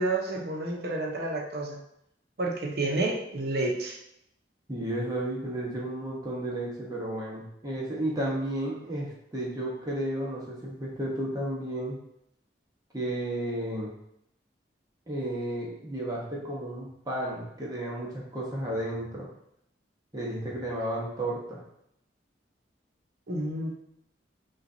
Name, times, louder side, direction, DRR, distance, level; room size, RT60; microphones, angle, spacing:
voice 1, 0.0-1.8 2.4-4.0 23.3-23.9, right 2 dB, 60° right, 0 dB, 0.9 m, -30 dB
voice 2, 4.7-12.0 12.9-13.9 15.1-19.3 20.1-21.6, right 1 dB, 20° right, -4 dB, 1.0 m, -33 dB
5.8 x 2.5 x 2.7 m, 0.76 s
head